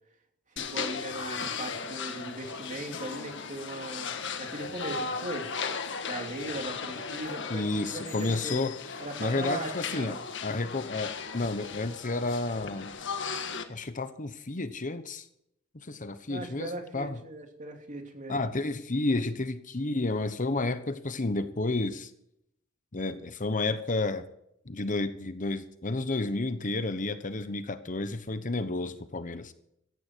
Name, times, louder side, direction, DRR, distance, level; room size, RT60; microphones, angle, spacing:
voice 1, 0.5-5.5 6.0-8.6 9.0-10.2 16.3-18.5, right 2 dB, 35° right, 4 dB, 2.9 m, -39 dB
sound 1, 0.6-13.6, left 5 dB, 60° left, 1.7 m, -37 dB
voice 2, 7.5-8.8 9.2-10.1 10.4-12.9 13.7-15.3 15.7-17.2 18.3-22.1 22.9-24.2 24.7-29.5, left 2 dB, 40° left, 11 dB, 1.1 m, -31 dB
16.5 x 14.0 x 4.6 m, 0.75 s
head